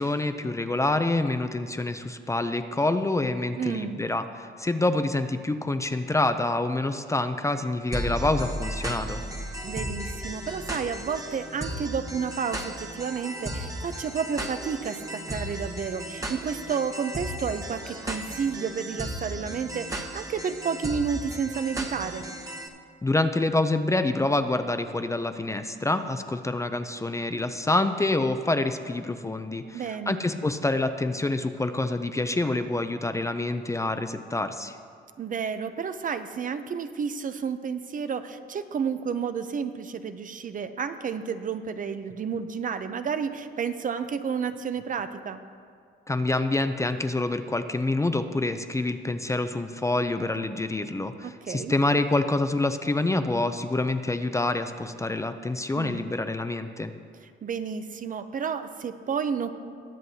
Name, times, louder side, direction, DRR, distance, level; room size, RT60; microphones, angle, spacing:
voice 1, 0.0-9.2 23.0-34.8 46.1-56.9, left 2 dB, 15° left, 9 dB, 0.5 m, -27 dB
voice 2, 3.6-4.0 9.6-22.2 29.7-30.2 35.2-45.4 51.2-51.7 55.8-56.1 57.4-59.5, right 6 dB, 45° right, 10 dB, 0.6 m, -31 dB
sound 1, 7.9-22.7, right 1 dB, 15° right, 1.1 m, -35 dB
20.5 x 7.6 x 2.8 m, 2.2 s
cardioid pair, 90°, 20 cm